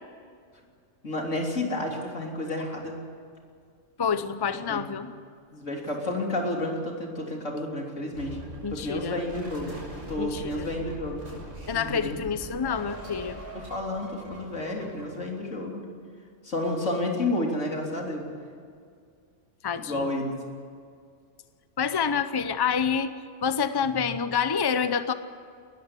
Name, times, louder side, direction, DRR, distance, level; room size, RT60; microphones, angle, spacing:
voice 1, 1.0-3.0 4.7-4.8 5.5-8.4 8.7-9.8 10.1-11.2 11.7-12.2 13.5-15.8 16.4-18.2 19.8-20.3, left 1 dB, 90° left, 0 dB, 3.8 m, -30 dB
voice 2, 4.0-5.1 8.6-9.2 10.2-10.7 11.7-13.4 19.6-20.1 21.8-25.1, left 6 dB, 25° left, 11 dB, 0.7 m, -27 dB
sound 1, 8.1-15.2, right 1 dB, 90° right, 6.7 m, -42 dB
19.5 x 14.5 x 9.8 m, 2.2 s
omnidirectional pair, 1.3 m